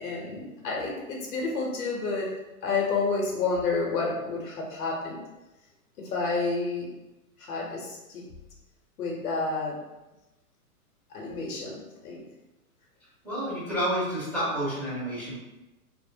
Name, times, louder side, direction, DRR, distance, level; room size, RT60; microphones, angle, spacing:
voice 1, 0.0-2.3 2.6-5.2 6.0-6.9 7.4-8.2 9.0-9.8 11.1-12.2, left 4 dB, 85° left, -2 dB, 0.8 m, -30 dB
voice 2, 13.2-15.3, equal, 5° right, -25 dB, 0.4 m, -29 dB
2.5 x 2.0 x 2.6 m, 1.0 s
hypercardioid pair, 170°, 44 cm